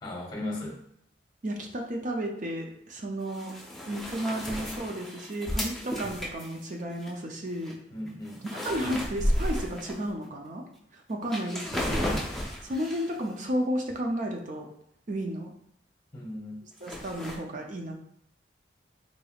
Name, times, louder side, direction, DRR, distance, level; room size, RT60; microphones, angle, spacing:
voice 1, 0.0-0.8 7.9-8.4 11.8-12.3 16.1-16.6, left 1 dB, 25° left, -2 dB, 1.0 m, -37 dB
voice 2, 1.4-3.5 3.9-7.8 8.5-10.6 10.9-12.2 12.6-14.7 15.1-15.5 16.8-17.9, equal, 45° right, 2 dB, 0.5 m, -33 dB
sound 1, 3.2-7.1 7.6-7.7 8.1-10.2 10.8-10.9 11.2-13.2 16.8-17.4, equal, ahead, 0.5 m, -33 dB
3.9 x 3.4 x 2.3 m, 0.71 s
head